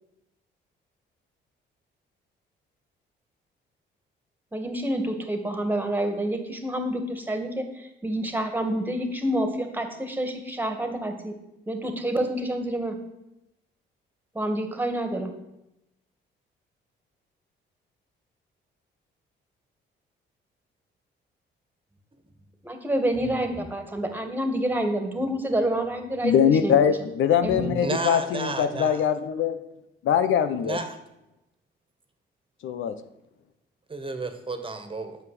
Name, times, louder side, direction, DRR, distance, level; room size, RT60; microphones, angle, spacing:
voice 1, 4.5-11.4 11.7-13.0 14.3-15.3 22.7-26.8 27.4-27.8, right 1 dB, 10° right, 6 dB, 2.2 m, -28 dB
voice 2, 26.2-29.6 30.0-30.8 32.6-33.0, left 8 dB, 80° left, 10 dB, 1.0 m, -22 dB
voice 3, 27.8-29.0 30.6-30.9 33.9-35.2, right 3 dB, 25° right, 7 dB, 1.7 m, -32 dB
9.4 x 7.4 x 7.8 m, 0.89 s
cardioid pair, 90°, 20 cm